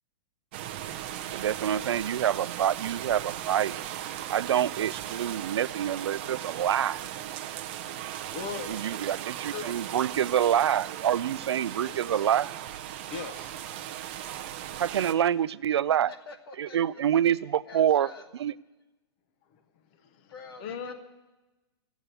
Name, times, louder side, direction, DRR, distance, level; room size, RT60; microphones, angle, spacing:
sound 1, 0.5-15.1, right 11 dB, 25° right, 0.5 m, -37 dB
voice 1, 1.3-3.8 4.3-7.0 8.7-12.5 14.8-16.1 16.6-18.1 18.4-18.5, right 10 dB, 75° right, 18 dB, 0.4 m, -26 dB
voice 2, 8.0-9.0 9.5-9.8 11.8-12.2 13.1-13.5 20.0-20.3 20.6-20.9, left 7 dB, 20° left, 9 dB, 0.6 m, -39 dB
voice 3, 16.1-17.0 17.4-18.3 20.3-20.9, left 4 dB, 60° left, 6 dB, 1.5 m, -47 dB
14.0 x 8.1 x 9.0 m, 1.1 s
hypercardioid pair, 175°, 14 cm